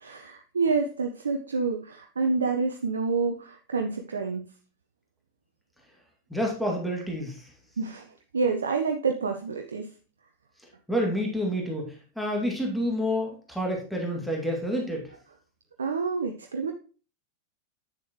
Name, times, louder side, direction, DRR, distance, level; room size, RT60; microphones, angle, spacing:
voice 1, 0.0-4.4 7.8-9.9 15.8-16.7, right 4 dB, 70° right, 4 dB, 0.7 m, -28 dB
voice 2, 6.3-7.5 10.9-15.1, equal, ahead, -1 dB, 2.2 m, -29 dB
8.9 x 7.0 x 3.0 m, 0.37 s
figure-of-eight pair, 90°, 0 cm